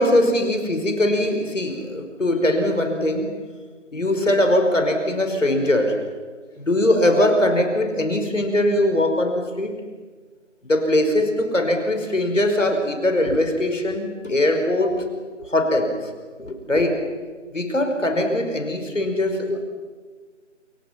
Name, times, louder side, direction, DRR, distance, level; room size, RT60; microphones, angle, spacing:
voice 1, 0.0-3.3 3.9-6.0 6.6-9.7 10.7-15.0 15.4-15.9 16.4-17.0 17.5-19.6, left 1 dB, 75° left, 5 dB, 5.4 m, -21 dB
29.0 x 25.5 x 6.1 m, 1.5 s
figure-of-eight pair, 180°, 38 cm